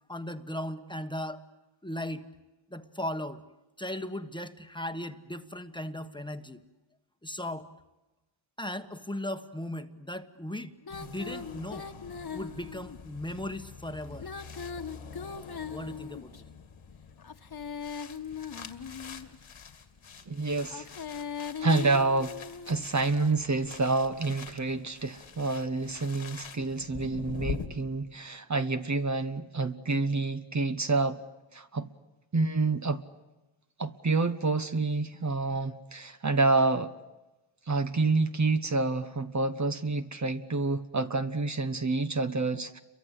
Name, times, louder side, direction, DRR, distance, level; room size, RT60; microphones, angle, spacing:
voice 1, 0.1-1.4 1.8-2.3 2.7-3.4 3.8-6.6 7.2-7.7 8.6-10.7 11.0-11.9 12.3-14.3 15.7-16.3, left 1 dB, 10° left, 8 dB, 1.2 m, -37 dB
Female singing, 10.8-13.0 14.1-16.4 17.2-19.4 20.6-22.9, left 6 dB, 50° left, 1.6 m, -39 dB
sound 1, 10.9-27.7, left 6 dB, 75° left, 2.3 m, -45 dB
voice 2, 20.3-20.9 21.4-22.4 22.7-31.2 31.5-31.9 32.3-33.0 33.8-36.9 37.7-42.8, right 3 dB, 35° right, 8 dB, 1.1 m, -28 dB
29.5 x 23.5 x 8.3 m, 1.1 s
wide cardioid pair, 105°, 49 cm